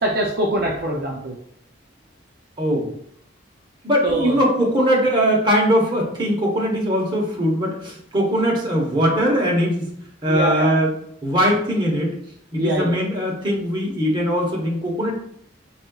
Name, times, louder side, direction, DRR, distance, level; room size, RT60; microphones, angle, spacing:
voice 1, 0.0-1.3 4.0-4.3 10.3-10.7 12.6-13.0, right 1 dB, 50° right, -1 dB, 0.4 m, -23 dB
voice 2, 2.6-2.9 3.8-9.9 10.2-10.9 11.2-12.1 12.5-15.1, equal, 25° right, -2 dB, 0.9 m, -20 dB
4.1 x 3.7 x 2.3 m, 0.68 s
head